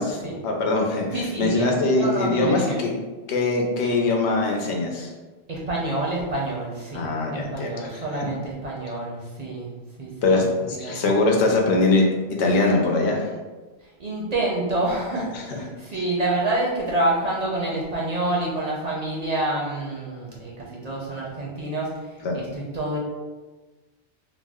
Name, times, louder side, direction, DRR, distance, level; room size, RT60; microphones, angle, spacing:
voice 1, 0.0-2.9 3.3-5.1 6.9-8.3 10.2-12.0 12.3-13.3 15.3-15.6 22.2-22.4, left 2 dB, 90° left, 0 dB, 0.9 m, -22 dB
voice 2, 1.1-1.7 2.0-2.8 5.5-7.1 7.3-9.7 10.0-10.4 10.7-11.0 14.0-21.9 22.3-23.0, right 2 dB, 50° right, -4 dB, 0.5 m, -27 dB
2.5 x 2.0 x 3.4 m, 1.2 s
omnidirectional pair, 1.1 m